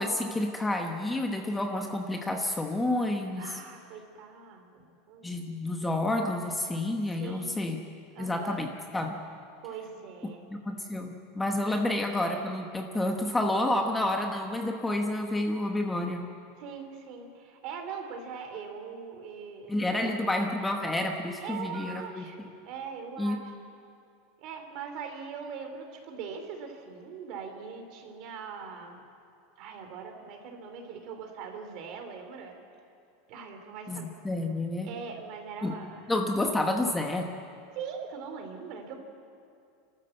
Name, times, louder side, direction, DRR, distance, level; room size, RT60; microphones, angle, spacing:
voice 1, 0.0-3.5 5.2-7.8 8.2-9.2 10.5-16.3 19.7-22.5 23.2-23.4 33.9-34.9 35.6-35.8 36.1-37.3, left 1 dB, 5° left, 3 dB, 1.0 m, -29 dB
voice 2, 3.4-5.3 7.0-7.8 8.1-8.6 9.6-10.4 11.7-11.8 16.6-20.1 21.4-23.5 24.4-29.0 29.6-32.5 33.3-34.1 34.8-36.2 37.7-38.9, right 6 dB, 45° right, 5 dB, 3.0 m, -41 dB
29.0 x 13.5 x 7.8 m, 2.5 s
supercardioid pair, 165°, 0 cm